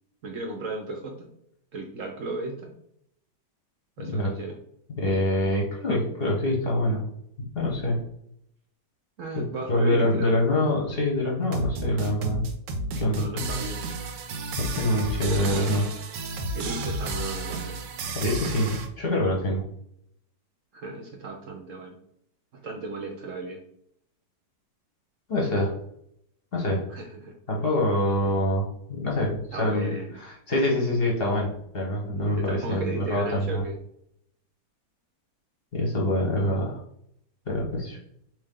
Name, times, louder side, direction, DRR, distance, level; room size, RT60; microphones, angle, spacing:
voice 1, 0.2-1.3 1.7-2.7 4.0-4.6 9.2-10.6 13.2-13.8 16.5-17.8 20.7-22.0 22.6-23.6 26.9-27.3 28.2-28.5 29.5-30.2 32.3-33.8, right 2 dB, 60° right, 1 dB, 0.9 m, -35 dB
voice 2, 4.0-4.3 5.0-7.0 7.5-8.0 9.7-12.4 13.0-13.5 14.6-15.9 18.1-18.7 19.0-19.6 25.3-25.7 26.5-26.9 27.5-33.6 35.7-36.8 37.5-38.0, left 1 dB, 40° left, -2 dB, 1.0 m, -25 dB
sound 1, 11.4-18.9, right 2 dB, 90° right, 1.3 m, -32 dB
4.4 x 3.2 x 3.7 m, 0.72 s
omnidirectional pair, 1.9 m